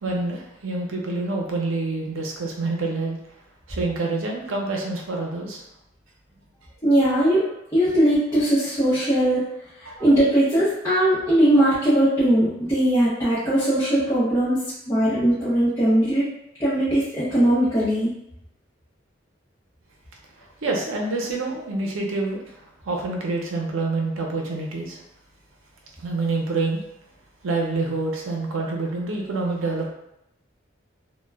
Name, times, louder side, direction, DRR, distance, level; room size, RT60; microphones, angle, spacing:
voice 1, 0.0-3.2 3.7-5.6 9.9-10.1 20.4-25.0 26.0-26.8 27.4-29.9, right 3 dB, 90° right, 0 dB, 0.6 m, -27 dB
voice 2, 6.8-7.4 7.7-9.4 10.0-14.6 14.9-16.2 16.6-18.1, right 1 dB, 15° left, -13 dB, 0.6 m, -19 dB
2.2 x 2.1 x 3.3 m, 0.82 s
head